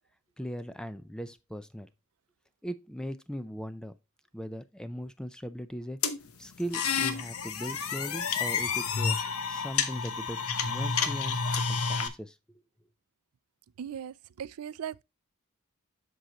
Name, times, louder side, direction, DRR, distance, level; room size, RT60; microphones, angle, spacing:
voice 1, 0.4-1.9 2.6-3.9 4.3-6.0 6.4-9.2 9.5-12.4, equal, 5° left, 0.4 m, -39 dB
sound 1, 6.0-12.1, left 5 dB, 75° left, 0.9 m, -30 dB
voice 2, 13.8-15.0, right 8 dB, 85° right, 0.4 m, -38 dB
7.7 x 6.3 x 2.9 m
head